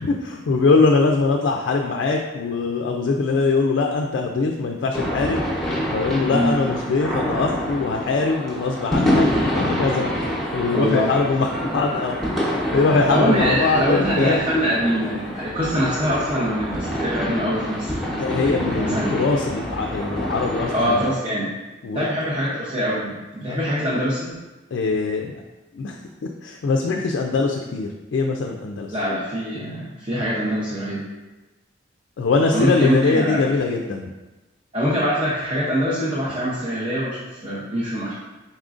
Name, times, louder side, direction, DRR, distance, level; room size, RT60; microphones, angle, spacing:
voice 1, 0.0-5.4 5.9-9.3 9.5-10.1 10.5-14.4 18.2-21.0 21.8-22.1 23.5-23.7 24.7-25.4 25.7-29.0 32.2-34.1, left 3 dB, 70° left, 1 dB, 0.3 m, -22 dB
sound 1, 4.9-21.1, equal, ahead, 0.9 m, -26 dB
voice 2, 10.7-11.1 13.1-18.1 18.8-19.2 20.7-21.5 21.9-24.3 28.9-31.0 32.5-33.4 34.7-38.1, equal, 30° right, -7 dB, 0.7 m, -23 dB
4.1 x 3.6 x 2.4 m, 1.1 s
head